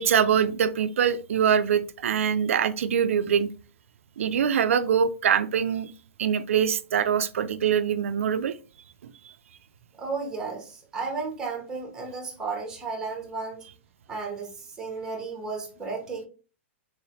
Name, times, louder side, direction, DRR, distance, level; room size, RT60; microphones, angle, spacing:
voice 1, 0.0-3.5 4.2-5.9 6.2-8.6 9.0-9.3, right 8 dB, 90° right, 0.4 m, -24 dB
voice 2, 10.0-13.6 14.1-16.3, right 4 dB, 10° right, 1.0 m, -33 dB
3.8 x 3.1 x 2.7 m
hypercardioid pair, 160°, 7 cm